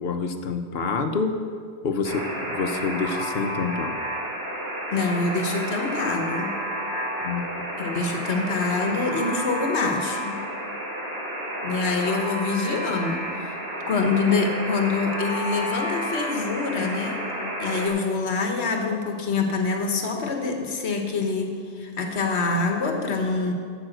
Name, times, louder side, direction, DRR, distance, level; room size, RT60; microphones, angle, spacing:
voice 1, 0.0-1.3 1.8-4.0 7.2-7.9, left 4 dB, 70° left, 7 dB, 1.0 m, -27 dB
Alarm, 2.0-17.9, equal, 70° right, 2.2 m, -31 dB
voice 2, 4.9-6.5 7.8-10.4 11.6-13.6 13.9-17.2 17.6-23.5, left 4 dB, 90° left, 4 dB, 1.3 m, -25 dB
13.0 x 5.2 x 7.7 m, 2.1 s
omnidirectional pair, 1.1 m